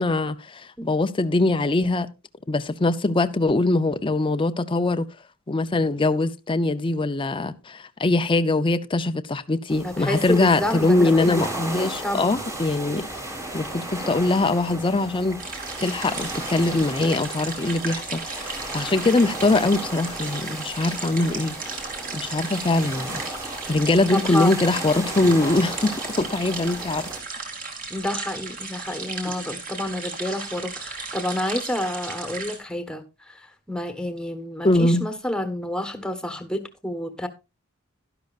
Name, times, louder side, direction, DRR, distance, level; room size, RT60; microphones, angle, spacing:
voice 1, 0.0-2.1 2.5-5.1 5.5-13.1 13.5-15.4 15.8-21.6 22.1-23.2 23.7-27.1 34.6-35.0, left 2 dB, 25° left, 0.5 m, -22 dB
sound 1, 9.7-27.2, right 1 dB, 15° right, 1.7 m, -35 dB
voice 2, 9.8-11.4 12.0-12.3 24.1-24.6 27.9-37.3, left 1 dB, 5° left, 1.2 m, -29 dB
sound 2, 15.4-32.6, right 4 dB, 40° right, 2.8 m, -35 dB
12.0 x 11.5 x 2.4 m
head